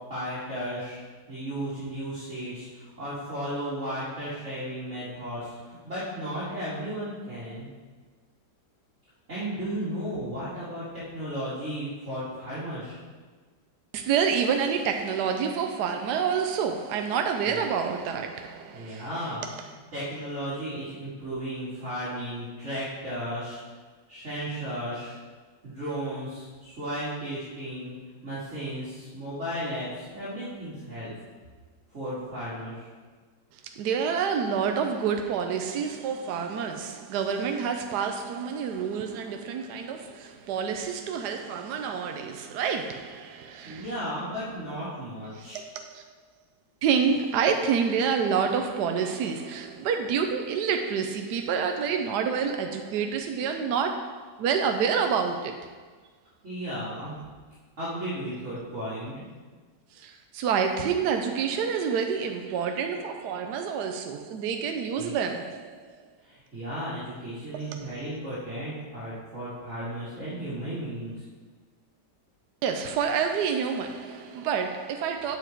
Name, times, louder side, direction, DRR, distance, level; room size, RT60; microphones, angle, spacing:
voice 1, 0.1-1.0 1.3-7.7 9.3-13.0 17.4-17.6 18.7-23.6 24.1-25.2 25.6-27.9 28.2-31.1 31.9-32.9 43.6-45.6 56.4-57.2 57.8-59.2 65.0-65.1 66.2-71.2, equal, 40° right, 2.6 m, -34 dB
voice 2, 13.9-19.1 33.8-43.9 45.3-46.0 46.8-55.7 59.9-65.9 72.6-75.4, right 6 dB, 70° right, 1.1 m, -28 dB
8.7 x 7.0 x 4.5 m
omnidirectional pair, 1.9 m